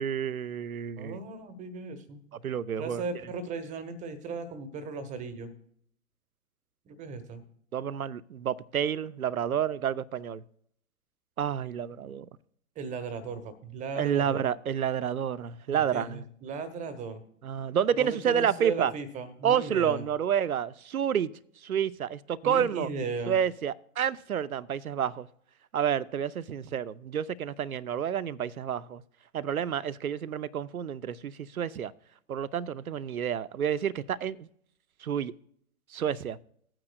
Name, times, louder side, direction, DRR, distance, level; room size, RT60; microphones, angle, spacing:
voice 1, 0.0-1.2 2.4-3.0 7.7-10.4 11.4-12.3 14.0-16.2 17.4-18.9 19.4-21.3 21.6-22.9 23.3-25.3 25.7-29.0 29.3-31.9 32.3-34.5 35.0-35.3 35.9-36.4, right 8 dB, 80° right, 0.6 m, -29 dB
voice 2, 1.0-2.2 2.8-5.5 6.9-7.4 12.8-14.5 15.7-17.2 18.0-20.0 22.4-23.4, right 4 dB, 15° right, 1.0 m, -37 dB
17.5 x 8.8 x 2.2 m
figure-of-eight pair, 110°, 42 cm